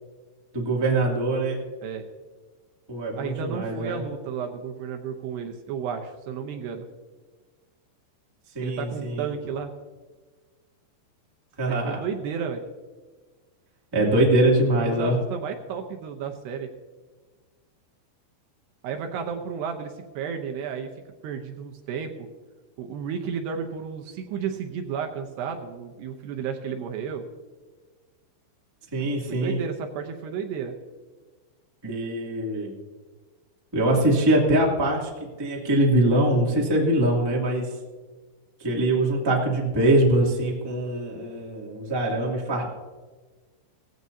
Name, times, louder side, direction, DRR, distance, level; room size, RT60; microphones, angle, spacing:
voice 1, 0.5-1.6 2.9-4.0 8.5-9.2 11.6-12.0 13.9-15.2 28.9-29.6 31.8-32.7 33.7-35.1 35.4-37.7 38.6-42.7, right 1 dB, 10° right, -3 dB, 1.0 m, -23 dB
voice 2, 3.2-6.9 8.6-9.7 11.7-12.6 14.8-16.7 18.8-20.9 21.2-22.1 22.8-27.2 29.0-30.7, right 7 dB, 75° right, 4 dB, 2.8 m, -32 dB
17.5 x 15.5 x 2.8 m, 1.4 s
omnidirectional pair, 5.4 m